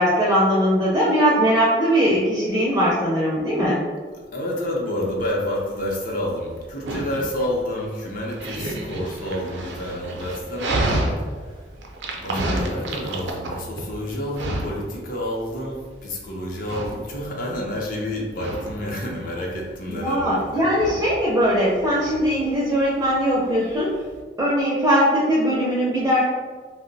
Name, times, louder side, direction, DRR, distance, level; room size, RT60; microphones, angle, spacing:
voice 1, 0.0-3.8 12.3-12.7 19.9-23.9 24.4-26.2, equal, 15° right, -5 dB, 0.5 m, -20 dB
voice 2, 4.3-11.1 11.5-11.6 12.1-20.7, left 1 dB, 50° left, -2 dB, 0.6 m, -29 dB
Dog, 5.0-24.2, right 1 dB, 85° right, 0.5 m, -32 dB
2.6 x 2.1 x 3.9 m, 1.5 s
head